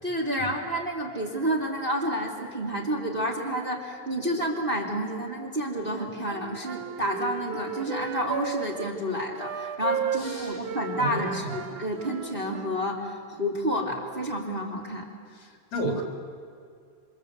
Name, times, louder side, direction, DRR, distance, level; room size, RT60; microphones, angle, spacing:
voice 1, 0.0-15.1, equal, 15° right, -1 dB, 2.7 m, -30 dB
Wind instrument woodwind instrument, 6.0-8.9 9.4-12.8, right 7 dB, 80° right, 2.6 m, -34 dB
voice 2, 10.2-10.6 11.0-11.5 15.7-16.0, right 1 dB, 70° left, 1 dB, 5.3 m, -31 dB
27.5 x 26.5 x 8.0 m, 2.3 s
omnidirectional pair, 3.5 m